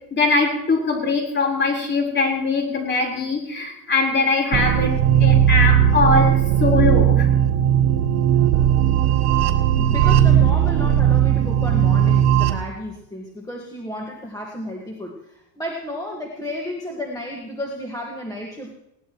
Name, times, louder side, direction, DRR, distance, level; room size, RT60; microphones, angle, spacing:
voice 1, 0.1-7.3, left 3 dB, 25° left, 0 dB, 4.2 m, -21 dB
sound 1, 4.5-12.5, right 10 dB, 75° right, 1.9 m, -17 dB
voice 2, 9.8-18.7, equal, 5° left, -1 dB, 1.7 m, -32 dB
20.5 x 18.0 x 3.1 m, 0.82 s
cardioid pair, 155°, 47 cm